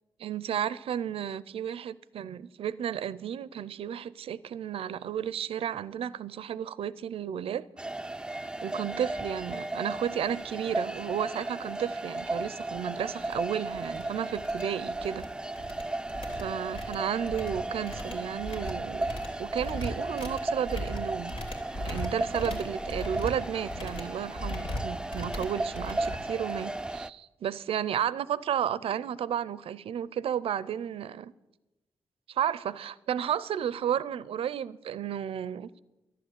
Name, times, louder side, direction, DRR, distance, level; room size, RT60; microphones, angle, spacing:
voice 1, 0.2-7.7 8.6-15.3 16.4-19.1 19.4-21.3 21.7-31.3 32.3-35.7, right 9 dB, 80° right, 0.5 m, -33 dB
sound 1, 7.8-27.1, right 2 dB, 10° right, 0.4 m, -35 dB
sound 2, 12.7-12.8 13.2-13.4 13.7-14.0 14.3-15.3 15.6-26.8, left 1 dB, 70° left, 3.2 m, -39 dB
12.0 x 11.0 x 8.2 m
cardioid pair, 75°, 10 cm